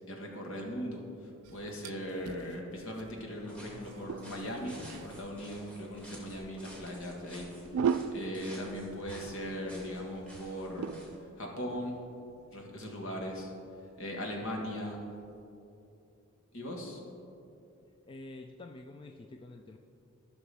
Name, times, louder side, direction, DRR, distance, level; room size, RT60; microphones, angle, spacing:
voice 1, 0.1-1.0 1.5-7.5 8.1-11.0 11.4-12.0 12.5-13.5 14.0-15.0 16.5-17.0, equal, 65° left, 0 dB, 1.5 m, -39 dB
sound 1, 1.4-15.4, right 6 dB, 75° right, 0.3 m, -41 dB
voice 2, 3.4-4.5 8.0-8.4 14.4-14.8 18.1-19.8, left 2 dB, 25° left, 4 dB, 0.3 m, -49 dB
sound 2, 3.5-11.2, equal, 5° left, 2.0 m, -52 dB
15.0 x 5.9 x 3.4 m, 2.8 s
head